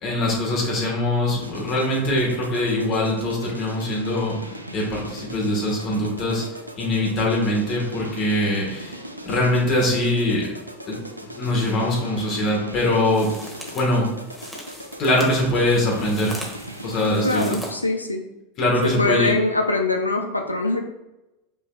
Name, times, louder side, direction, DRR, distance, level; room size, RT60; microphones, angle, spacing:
voice 1, 0.0-4.3 4.7-6.4 6.8-9.0 9.2-10.5 10.9-11.0 11.3-13.3 13.7-14.1 15.0-16.3 16.8-17.6 18.6-19.3, left 1 dB, 40° left, -2 dB, 1.3 m, -22 dB
sound 1, 1.4-17.6, right 1 dB, 90° right, 0.4 m, -39 dB
sound 2, 12.7-17.7, equal, ahead, 1.1 m, -40 dB
voice 2, 17.2-18.3 18.8-20.8, left 2 dB, 85° left, 3 dB, 0.4 m, -23 dB
5.5 x 3.2 x 2.4 m, 0.96 s
figure-of-eight pair, 80°, 0 cm